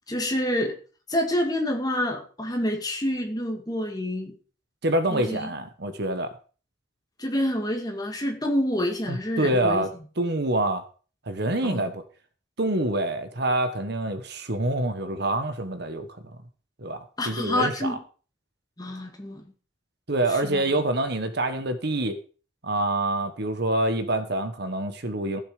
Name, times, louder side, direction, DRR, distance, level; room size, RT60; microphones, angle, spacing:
voice 1, 0.1-0.8 1.1-4.3 5.1-5.5 7.2-9.8 11.6-11.8 17.2-18.0 18.8-19.4 20.5-20.6, left 1 dB, 20° left, 3 dB, 2.1 m, -27 dB
voice 2, 4.8-6.3 9.1-10.8 11.3-12.0 12.6-16.4 16.8-18.0 20.1-22.2 22.6-25.4, right 1 dB, 55° right, 10 dB, 1.2 m, -26 dB
15.5 x 7.2 x 5.0 m, 0.38 s
head